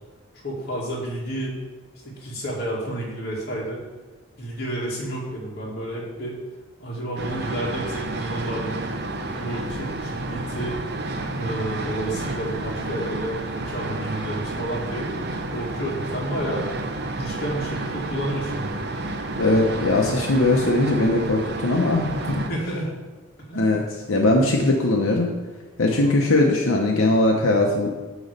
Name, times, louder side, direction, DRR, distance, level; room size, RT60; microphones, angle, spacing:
voice 1, 0.4-1.5 2.0-3.8 4.4-6.3 6.8-8.8 9.4-10.8 11.3-15.1 15.5-16.7 17.1-18.9 22.5-22.9 23.5-23.7 25.8-26.2, right 1 dB, 50° left, -4 dB, 2.0 m, -30 dB
sound 1, 7.2-22.5, right 2 dB, 50° right, 0.6 m, -30 dB
voice 2, 19.4-22.4 23.5-25.3 25.8-27.9, left 2 dB, 85° left, 0 dB, 0.9 m, -20 dB
9.2 x 3.1 x 6.6 m, 1.2 s
head